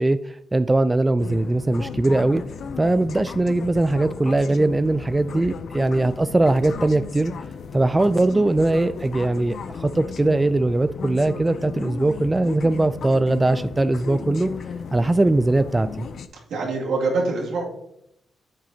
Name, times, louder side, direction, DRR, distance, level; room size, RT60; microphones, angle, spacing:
voice 1, 0.0-2.4 2.8-7.3 7.7-14.5 14.9-16.1, right 2 dB, 20° right, 13 dB, 0.3 m, -20 dB
sound 1, 1.2-16.3, left 6 dB, 65° left, 0.5 m, -35 dB
voice 2, 16.5-17.6, right 3 dB, 75° right, -2 dB, 2.3 m, -24 dB
9.1 x 7.5 x 2.8 m, 0.77 s
supercardioid pair, 55°, 0 cm